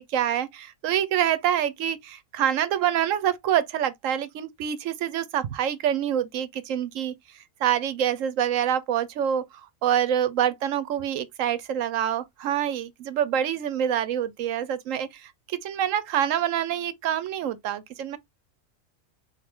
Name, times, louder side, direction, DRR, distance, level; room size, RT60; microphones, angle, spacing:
voice 1, 0.0-7.1 7.6-9.5 9.8-18.2, right 10 dB, 70° right, 1.0 m, -26 dB
4.9 x 2.6 x 3.5 m
omnidirectional pair, 1.5 m